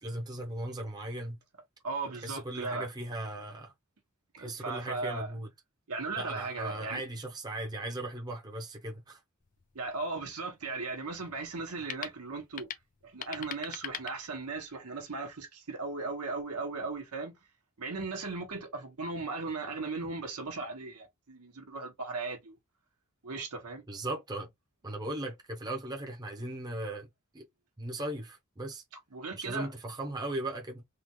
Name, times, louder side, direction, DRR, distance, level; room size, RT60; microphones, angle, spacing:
voice 1, 0.0-1.4 2.2-3.7 4.4-5.5 6.2-9.2 23.9-24.5 24.8-27.1 27.3-27.4 27.8-28.8 29.3-30.8, right 1 dB, 20° right, 0.7 m, -37 dB
voice 2, 1.8-2.9 4.3-5.3 5.9-7.0 9.7-12.7 13.0-17.3 17.8-22.6 23.2-23.8 28.9-29.7, right 3 dB, 85° right, 1.2 m, -37 dB
sound 1, 9.4-14.8, left 8 dB, 35° left, 0.4 m, -44 dB
3.7 x 2.4 x 2.9 m
head